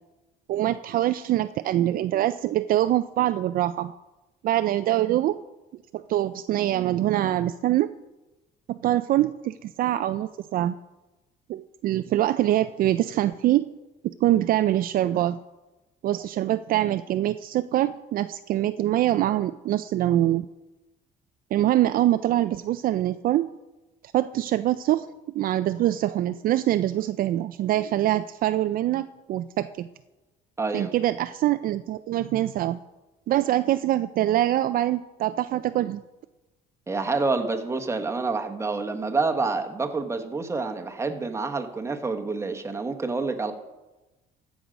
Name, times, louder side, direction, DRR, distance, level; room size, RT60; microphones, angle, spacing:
voice 1, 0.5-3.9 4.4-5.4 5.9-7.9 8.7-10.7 11.5-13.6 14.2-15.4 16.0-20.5 21.5-23.5 24.1-25.1 25.3-29.9 30.7-32.8 33.3-36.0, right 13 dB, 60° right, 11 dB, 0.4 m, -24 dB
voice 2, 30.6-30.9 36.9-43.5, right 3 dB, 15° right, 5 dB, 1.2 m, -28 dB
15.0 x 6.2 x 5.1 m, 1.1 s
cardioid pair, 110°, 17 cm